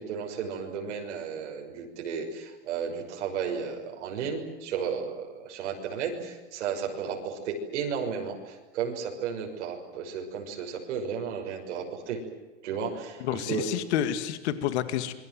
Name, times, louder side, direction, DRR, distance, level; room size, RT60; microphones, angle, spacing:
voice 1, 0.1-12.2 12.6-13.6, right 6 dB, 85° right, 1 dB, 6.2 m, -33 dB
voice 2, 13.2-15.1, left 11 dB, 70° left, 11 dB, 2.2 m, -29 dB
26.5 x 23.5 x 7.7 m, 1.2 s
supercardioid pair, 140°, 35 cm